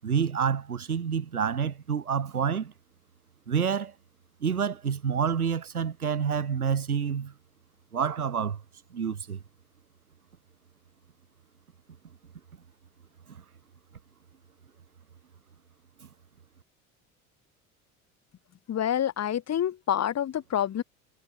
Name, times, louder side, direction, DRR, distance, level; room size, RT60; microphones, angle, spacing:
voice 1, 0.0-2.7 3.5-3.9 4.4-7.3 7.9-8.6 8.9-9.4, right 7 dB, 85° right, 8.0 m, -28 dB
voice 2, 18.7-20.8, left 10 dB, 35° left, 3.9 m, -27 dB
figure-of-eight pair, 70°, 43 cm